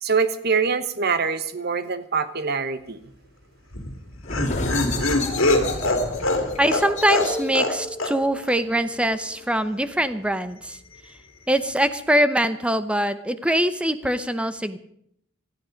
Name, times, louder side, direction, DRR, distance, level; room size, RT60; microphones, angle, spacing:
voice 1, 0.0-3.0, right 5 dB, 50° right, 12 dB, 1.1 m, -24 dB
Laughter, 3.7-7.7 8.0-8.1 8.4-8.5, left 2 dB, 70° left, 2.5 m, -23 dB
sound 1, 4.2-9.6, left 2 dB, 35° left, 3.1 m, -31 dB
voice 2, 6.6-10.8 11.5-14.8, right 1 dB, 5° right, 11 dB, 0.8 m, -23 dB
19.0 x 13.5 x 5.2 m, 0.70 s
head